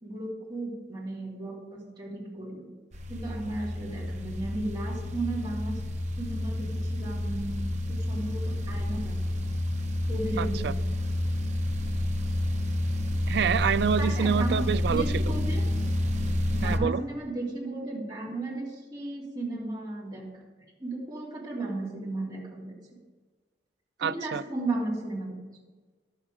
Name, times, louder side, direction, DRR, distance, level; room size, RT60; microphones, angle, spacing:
voice 1, 0.0-2.7 3.1-5.8 6.2-9.4 10.1-10.9 14.0-14.5 14.9-15.6 16.5-20.3 20.8-23.0 24.0-25.5, right 2 dB, 25° right, -5 dB, 3.1 m, -35 dB
sound 1, 2.9-16.8, left 1 dB, 45° right, 0.9 m, -29 dB
voice 2, 10.4-10.7 13.3-15.2 16.6-17.0 24.0-24.4, right 7 dB, 65° right, 16 dB, 0.3 m, -27 dB
11.5 x 7.3 x 5.0 m, 1.3 s
head